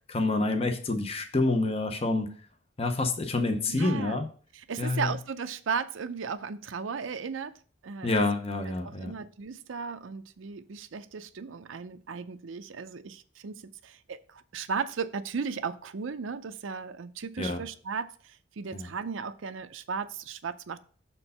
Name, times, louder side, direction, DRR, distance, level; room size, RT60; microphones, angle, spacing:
voice 1, 0.1-2.4 2.8-4.3 4.8-5.1 8.0-9.2 17.4-17.6 18.7-18.9, left 2 dB, 30° left, 0.7 m, -28 dB
voice 2, 3.7-4.2 4.7-7.5 7.8-8.1 8.8-20.8, right 5 dB, 80° right, 0.5 m, -36 dB
6.6 x 4.5 x 5.4 m
head